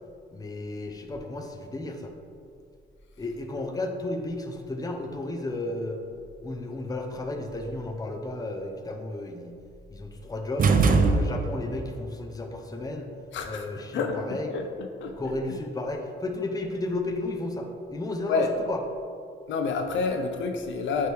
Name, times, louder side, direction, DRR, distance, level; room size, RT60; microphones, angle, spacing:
voice 1, 0.3-2.1 3.2-6.0 6.4-9.6 9.9-10.8 11.1-13.1 13.4-14.5 15.2-18.8, left 2 dB, 20° left, 4 dB, 0.7 m, -33 dB
sound 1, 10.6-11.8, right 4 dB, 45° right, 0.5 m, -21 dB
voice 2, 13.3-14.2 14.5-15.2 18.3-18.5 19.5-21.1, left 4 dB, 70° left, 5 dB, 0.6 m, -29 dB
9.1 x 3.2 x 3.4 m, 2.3 s
cardioid pair, 90°, 20 cm